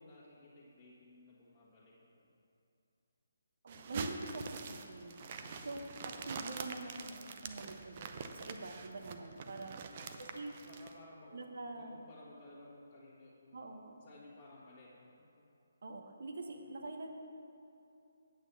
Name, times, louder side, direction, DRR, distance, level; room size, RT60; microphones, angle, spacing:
voice 1, 0.0-2.4 5.1-6.1 8.8-10.1 10.6-13.6 14.0-15.5 16.6-16.7, left 2 dB, 25° left, -8 dB, 1.8 m, -58 dB
voice 2, 3.6-5.2 5.6-9.8 10.2-10.6 11.3-12.0 13.5-14.0 15.8-17.1, right 2 dB, 65° right, 4 dB, 1.0 m, -45 dB
sound 1, 3.7-10.9, right 5 dB, 40° right, 0.6 m, -45 dB
9.0 x 6.2 x 7.0 m, 2.7 s
figure-of-eight pair, 150°, 0 cm